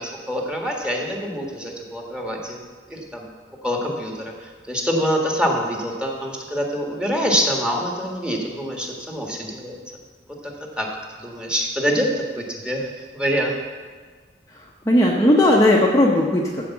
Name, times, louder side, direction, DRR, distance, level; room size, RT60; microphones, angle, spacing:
voice 1, 0.0-2.6 2.9-3.3 3.6-9.8 10.4-10.9 11.2-13.6, equal, 5° right, 0 dB, 1.6 m, -25 dB
voice 2, 14.5-16.7, left 1 dB, 20° left, -3 dB, 0.9 m, -17 dB
14.0 x 5.1 x 7.1 m, 1.5 s
head